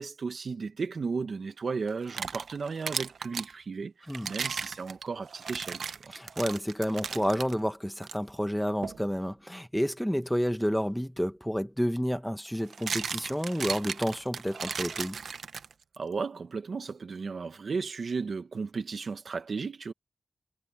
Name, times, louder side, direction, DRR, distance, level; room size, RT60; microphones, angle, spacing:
voice 1, 0.0-6.1 16.0-19.9, right 4 dB, 60° right, 1.2 m, -35 dB
sound 1, 1.9-3.5 4.1-7.5 8.0-8.2 8.8-9.0 11.2-11.3 12.5-16.0, right 6 dB, 80° right, 0.8 m, -36 dB
voice 2, 6.1-15.2, equal, ahead, 1.3 m, -30 dB
wide cardioid pair, 125°, 0 cm